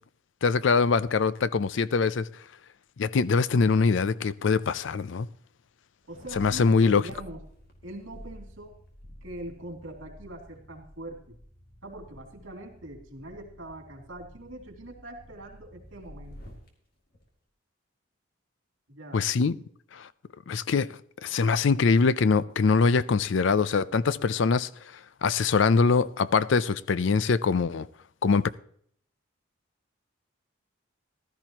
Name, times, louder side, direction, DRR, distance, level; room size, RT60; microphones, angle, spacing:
voice 1, 0.4-2.3 3.0-5.3 6.4-7.0 19.1-19.5 19.9-20.1 20.5-20.9 21.2-24.7 25.2-27.9 28.2-28.5, left 4 dB, 65° left, 0.4 m, -23 dB
sound 1, 6.0-16.7 17.1-17.2, equal, 50° left, 2.4 m, -50 dB
voice 2, 6.1-7.4 7.8-8.8 9.2-11.4 11.8-16.5 18.9-19.3, right 1 dB, 75° right, 2.9 m, -42 dB
15.0 x 13.0 x 3.0 m
head